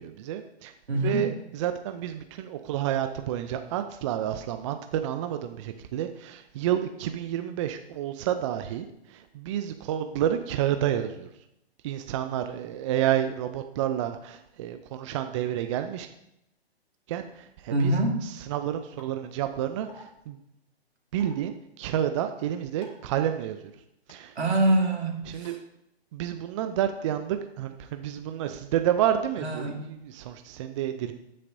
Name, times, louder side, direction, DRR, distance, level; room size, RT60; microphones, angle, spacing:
voice 1, 0.0-11.3 11.8-16.1 17.1-17.9 18.2-20.4 21.1-23.6 24.1-24.3 25.3-25.6 26.1-31.1, right 11 dB, 30° right, 8 dB, 0.5 m, -30 dB
voice 2, 0.9-1.4 17.7-18.3 24.3-25.6 29.4-29.9, right 1 dB, 80° right, 0 dB, 2.8 m, -25 dB
sound 1, 19.0-19.1 19.9-20.0 21.2-21.4 22.8-23.1 24.1-24.2 25.4-25.5, left 3 dB, 25° left, 2.0 m, -49 dB
10.0 x 9.7 x 2.7 m, 0.81 s
hypercardioid pair, 130°, 32 cm